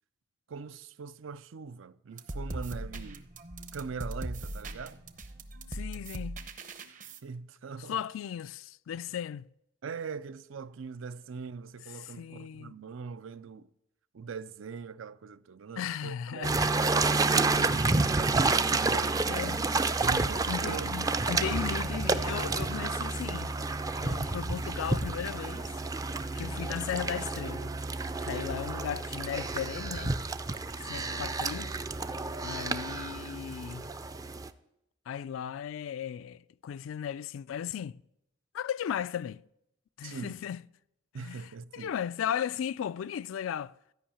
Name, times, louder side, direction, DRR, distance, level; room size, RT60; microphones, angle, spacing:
voice 1, 0.5-3.3 3.7-5.0 6.9-7.0 7.2-8.0 9.8-13.7 14.1-16.6 17.3-19.3 20.0-20.9 30.9-31.2 40.0-40.4 41.1-41.9, right 5 dB, 80° right, 0.5 m, -41 dB
sound 1, 2.1-7.2, right 1 dB, 40° right, 0.8 m, -40 dB
voice 2, 5.7-6.5 7.8-9.5 11.9-12.7 15.8-16.7 19.3-19.7 20.5-23.5 24.0-25.8 26.4-27.7 28.2-30.2 30.7-31.7 32.4-33.9 35.1-38.0 38.5-39.4 40.0-40.6 41.2-43.7, left 9 dB, 85° left, 0.3 m, -36 dB
sound 2, 16.4-34.5, right 3 dB, 20° right, 0.4 m, -30 dB
13.0 x 5.5 x 8.6 m
head